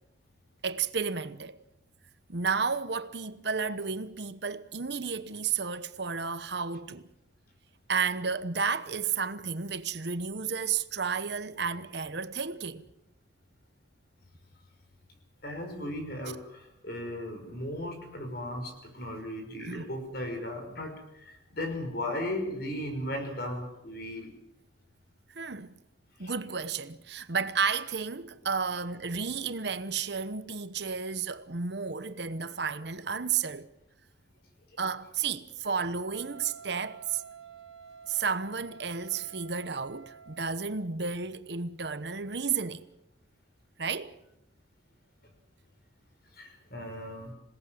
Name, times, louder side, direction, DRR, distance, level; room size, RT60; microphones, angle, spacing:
voice 1, 0.6-1.6 2.3-7.1 7.9-12.8 19.6-19.8 25.3-25.7 26.2-33.7 34.8-37.2 38.1-42.9 43.8-44.2, right 5 dB, 60° right, 1.1 m, -32 dB
voice 2, 15.4-24.3 26.2-26.3 46.3-47.3, left 1 dB, 50° left, 5.8 m, -36 dB
Wind instrument woodwind instrument, 36.1-40.8, right 6 dB, 80° right, 1.5 m, -50 dB
27.0 x 18.0 x 7.8 m
head